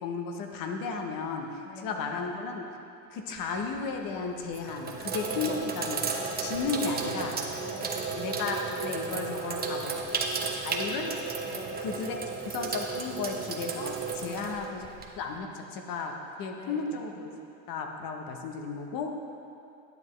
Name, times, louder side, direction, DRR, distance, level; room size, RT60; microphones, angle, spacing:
voice 1, 0.0-2.7 3.1-6.0 6.4-7.7 8.1-10.0 10.4-11.1 11.8-14.9 15.2-17.3 17.7-19.2, left 4 dB, 50° left, 3 dB, 1.1 m, -34 dB
voice 2, 1.6-2.1 5.3-5.8 7.6-8.1 9.3-10.0 11.4-11.9 14.2-14.7 16.6-17.0, left 2 dB, 70° left, -6 dB, 1.6 m, -47 dB
Sink (filling or washing), 3.4-3.8 4.4-15.3, right 4 dB, 20° right, 0.8 m, -33 dB
10.5 x 7.3 x 3.3 m, 2.7 s
supercardioid pair, 100°, 43 cm